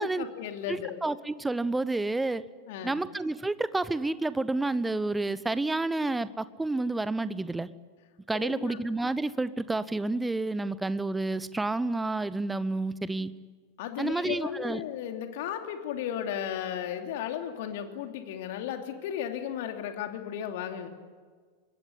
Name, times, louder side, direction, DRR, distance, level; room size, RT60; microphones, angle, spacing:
voice 1, 0.0-1.0 2.7-3.0 8.3-8.8 13.8-20.9, left 9 dB, 50° left, 5 dB, 2.9 m, -35 dB
voice 2, 0.7-2.4 2.8-7.7 8.3-13.3 14.0-14.8, right 2 dB, 10° right, 17 dB, 0.9 m, -30 dB
24.5 x 21.5 x 8.3 m, 1.5 s
figure-of-eight pair, 90°, 0 cm